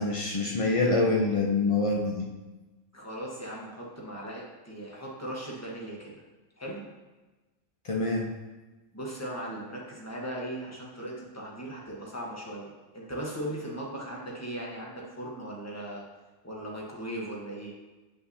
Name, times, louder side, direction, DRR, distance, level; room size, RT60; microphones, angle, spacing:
voice 1, 0.0-2.3 7.8-8.3, left 3 dB, 55° left, -1 dB, 0.3 m, -26 dB
voice 2, 2.9-6.2 6.6-6.8 8.9-16.0 16.4-17.7, right 1 dB, 15° left, -3 dB, 1.1 m, -38 dB
8.2 x 5.5 x 2.7 m, 1.2 s
omnidirectional pair, 1.4 m